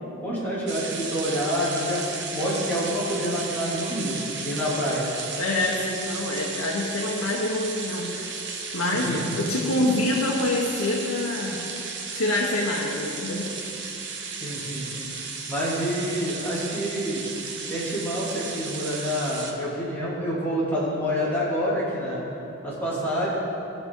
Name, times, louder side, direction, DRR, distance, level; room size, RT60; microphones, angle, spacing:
voice 1, 0.2-2.0 2.3-4.2 4.4-5.1 8.9-9.3 14.4-15.1 15.5-17.3 17.7-22.2 22.6-23.3, equal, 10° left, -8 dB, 2.8 m, -27 dB
sound 1, 0.7-19.5, right 5 dB, 60° right, 1.0 m, -34 dB
voice 2, 5.4-8.1 8.7-11.6 12.1-13.5, left 2 dB, 80° left, -4 dB, 1.2 m, -26 dB
17.0 x 6.9 x 3.8 m, 2.9 s
head